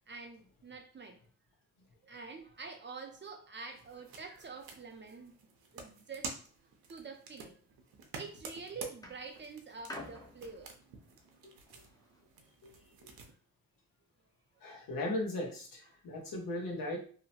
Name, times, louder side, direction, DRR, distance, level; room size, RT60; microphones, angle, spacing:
voice 1, 0.1-1.2 2.0-5.4 5.7-6.4 6.9-7.6 8.1-10.7 15.9-16.0, right 4 dB, 30° right, 4 dB, 0.5 m, -47 dB
sound 1, 3.7-13.3, right 4 dB, 85° right, 0.6 m, -50 dB
sound 2, 8.0-8.4 9.0-12.2 13.1-13.2, left 1 dB, 10° left, 0.6 m, -50 dB
voice 2, 14.6-17.0, left 1 dB, 70° left, 0 dB, 1.0 m, -37 dB
2.8 x 2.1 x 2.8 m, 0.43 s
cardioid pair, 90°, 35 cm